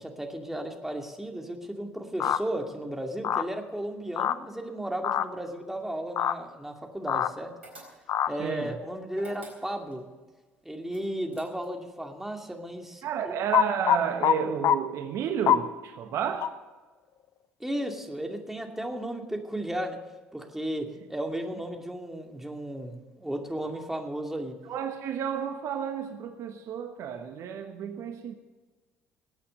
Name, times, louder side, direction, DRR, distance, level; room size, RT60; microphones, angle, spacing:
voice 1, 0.0-7.5 8.3-10.0 10.6-13.3 17.6-20.0 20.3-24.6, right 1 dB, 5° right, 2.6 m, -34 dB
sound 1, 2.2-2.4 3.2-3.4 4.2-4.3 5.0-5.2 6.2-6.3 7.1-7.3 8.1-8.3 13.5-14.3 14.6-14.8 15.5-15.6 16.4-16.5, left 10 dB, 55° left, 0.8 m, -23 dB
sound 2, 7.6-8.3 9.1-10.0 10.9-11.9, right 2 dB, 90° right, 4.2 m, -49 dB
voice 2, 8.4-8.7 13.0-16.5 24.7-28.3, right 8 dB, 55° right, 1.2 m, -31 dB
19.5 x 8.7 x 6.7 m
hypercardioid pair, 60°, 6 cm